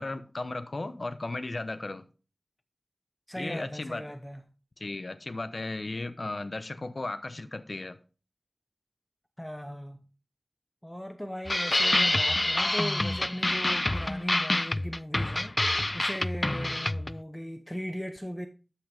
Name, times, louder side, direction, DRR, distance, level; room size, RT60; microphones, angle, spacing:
voice 1, 0.0-2.1 3.4-4.0 4.8-8.0, left 2 dB, 60° left, 0.9 m, -35 dB
voice 2, 3.3-4.4 9.4-10.1 10.8-18.5, equal, 5° left, 0.8 m, -38 dB
sound 1, 11.5-17.2, left 1 dB, 30° left, 0.3 m, -27 dB
13.0 x 5.8 x 3.5 m
wide cardioid pair, 55°, 0 cm